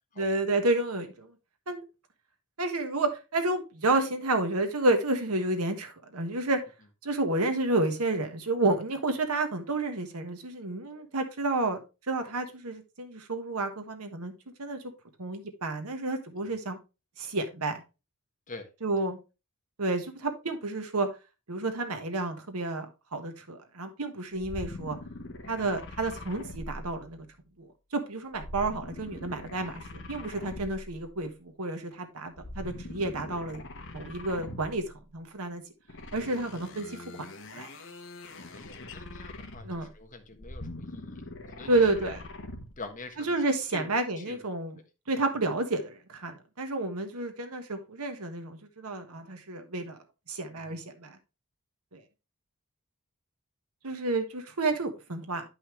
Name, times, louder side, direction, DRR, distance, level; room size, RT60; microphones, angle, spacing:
voice 1, 0.2-1.3 1.7-1.8 2.6-6.6 7.0-11.8 12.1-14.3 14.6-14.8 15.2-16.8 17.2-17.8 18.8-19.2 19.8-21.1 21.5-25.0 25.5-27.3 27.6-33.6 33.9-34.8 35.1-35.6 36.1-37.2 37.5-37.7 39.6-39.9 41.7-42.2 43.2-44.8 45.1-50.0 50.3-51.2 51.9-52.0 53.8-55.4, right 2 dB, 80° right, 1.4 m, -30 dB
sound 1, 24.4-27.4 28.3-31.0 32.3-34.9 35.9-39.9 40.3-42.8, left 2 dB, 60° left, 1.2 m, -43 dB
voice 2, 38.5-41.2 41.5-42.1 42.8-43.3 43.7-43.9 44.2-44.4 50.7-50.8, left 3 dB, 35° left, 1.3 m, -45 dB
10.0 x 5.6 x 3.1 m
head